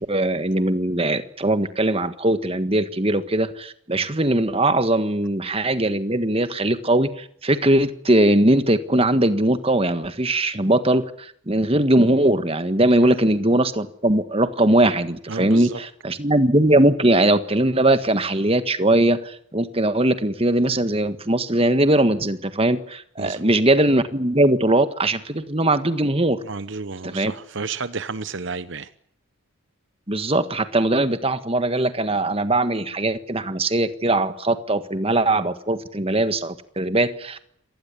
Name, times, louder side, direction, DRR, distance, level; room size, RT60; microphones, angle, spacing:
voice 1, 0.0-26.4 27.0-27.3 30.1-37.4, right 1 dB, 25° right, 11 dB, 1.6 m, -20 dB
voice 2, 15.3-15.8 23.2-23.5 26.4-28.9, right 4 dB, 60° right, 14 dB, 0.9 m, -31 dB
26.5 x 19.0 x 8.5 m, 0.67 s
head